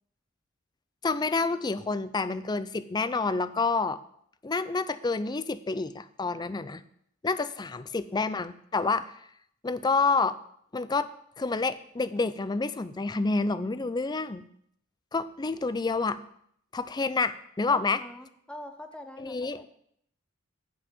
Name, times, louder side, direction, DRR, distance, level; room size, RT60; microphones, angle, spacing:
voice 1, 1.0-4.0 4.4-6.8 7.2-9.1 9.6-10.4 10.7-11.1 11.4-14.5 15.1-16.2 16.7-18.0 19.2-19.6, left 4 dB, 20° left, 14 dB, 0.4 m, -28 dB
voice 2, 7.7-8.4 17.7-19.7, left 1 dB, 5° left, 7 dB, 0.8 m, -46 dB
9.0 x 5.5 x 7.7 m, 0.69 s
head